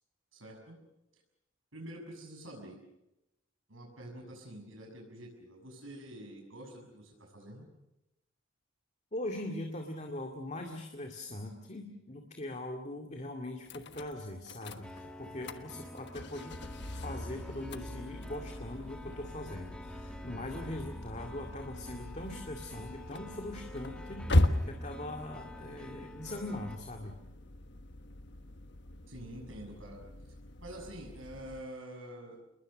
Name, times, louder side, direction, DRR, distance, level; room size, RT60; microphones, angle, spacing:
voice 1, 0.3-0.7 1.7-2.8 3.7-7.7 29.1-30.0 30.2-30.3 30.6-32.4, right 1 dB, 75° right, 1 dB, 6.7 m, -47 dB
voice 2, 9.1-16.6 16.9-27.2, left 1 dB, 35° left, 3 dB, 2.2 m, -41 dB
sound 1, 13.7-31.6, left 1 dB, 60° left, 1.3 m, -38 dB
sound 2, 14.8-26.8, equal, 5° left, 1.3 m, -48 dB
28.0 x 21.5 x 6.4 m, 0.91 s
head